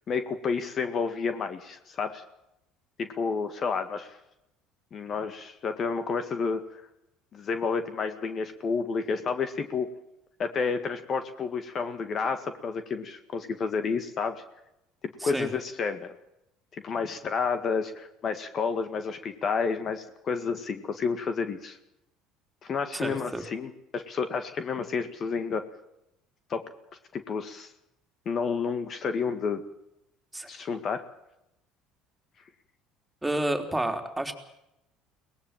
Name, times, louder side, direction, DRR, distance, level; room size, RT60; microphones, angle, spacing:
voice 1, 0.1-2.2 3.0-4.2 4.9-6.8 7.3-9.9 10.4-14.4 15.2-16.2 16.7-21.8 22.6-25.7 26.5-26.7 27.1-27.7 28.3-29.6 30.5-31.0, left 5 dB, 45° left, 9 dB, 1.9 m, -30 dB
voice 2, 22.9-23.4 30.3-30.5 33.2-34.3, right 1 dB, 10° right, 4 dB, 3.5 m, -30 dB
23.0 x 19.0 x 7.4 m, 0.85 s
supercardioid pair, 95°, 0 cm